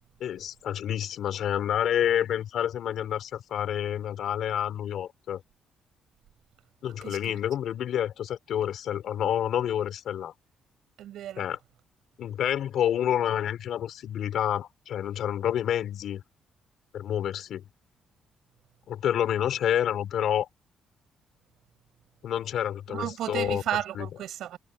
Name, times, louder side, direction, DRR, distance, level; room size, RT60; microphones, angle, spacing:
voice 1, 0.2-5.4 6.8-10.3 11.4-11.6 12.2-16.2 16.9-17.6 18.9-20.5 22.2-23.6 23.9-24.1, left 10 dB, 70° left, 3.8 m, -28 dB
voice 2, 7.0-7.4 11.0-11.4 22.9-24.6, right 12 dB, 80° right, 6.6 m, -33 dB
cardioid pair, 90°, 0 cm